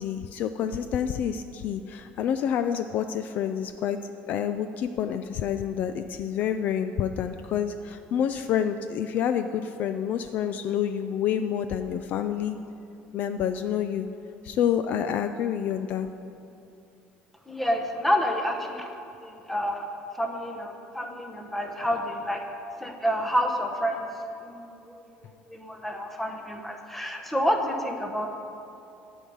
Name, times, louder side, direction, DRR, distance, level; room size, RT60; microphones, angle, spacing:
voice 1, 0.0-12.6 13.1-14.1 14.4-16.1, left 9 dB, 40° left, 9 dB, 0.3 m, -28 dB
voice 2, 17.5-18.9 19.2-19.9 20.1-22.4 22.8-24.1 24.4-28.3, equal, 5° left, 3 dB, 0.8 m, -29 dB
11.0 x 5.4 x 8.5 m, 2.8 s
cardioid pair, 175°, 4 cm